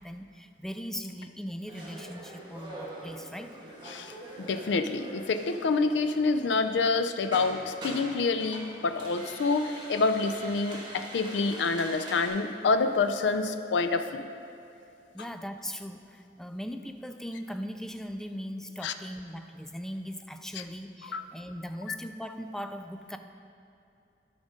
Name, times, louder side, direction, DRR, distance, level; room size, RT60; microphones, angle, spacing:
voice 1, 0.0-3.5 15.1-23.2, equal, 5° left, 7 dB, 0.3 m, -39 dB
sound 1, 1.7-12.3, right 1 dB, 25° right, 1.7 m, -44 dB
voice 2, 3.9-14.3 18.8-18.9 21.1-21.2, left 3 dB, 85° left, 9 dB, 0.4 m, -27 dB
13.5 x 5.2 x 3.7 m, 2.7 s
head